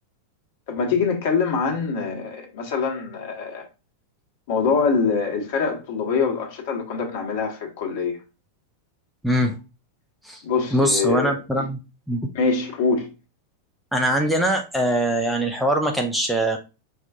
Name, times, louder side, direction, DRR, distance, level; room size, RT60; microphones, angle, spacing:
voice 1, 0.7-3.7 4.5-8.2 10.4-11.7 12.3-13.1, left 5 dB, 50° left, 1.3 m, -24 dB
voice 2, 9.2-9.6 10.2-10.4 10.7-11.8 12.1-12.2 13.9-16.6, right 1 dB, ahead, 0.6 m, -22 dB
5.4 x 2.5 x 3.7 m
figure-of-eight pair, 90°, 0 cm